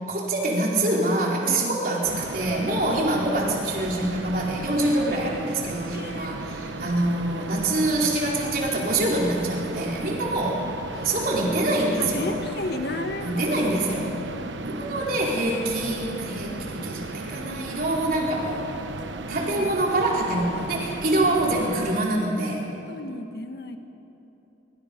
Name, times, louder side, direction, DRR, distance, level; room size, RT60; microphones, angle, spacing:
voice 1, 0.1-10.6 11.0-12.4 13.2-14.1 14.6-18.7 19.3-22.7, right 1 dB, 50° right, -3 dB, 4.2 m, -25 dB
sound 1, 2.0-22.0, right 2 dB, 85° right, 1.0 m, -36 dB
voice 2, 4.7-5.0 5.9-6.3 10.9-11.2 12.0-13.5 14.3-14.5 19.3-19.7 22.9-23.8, left 1 dB, 55° left, 6 dB, 1.6 m, -34 dB
25.0 x 24.5 x 5.3 m, 3.0 s
head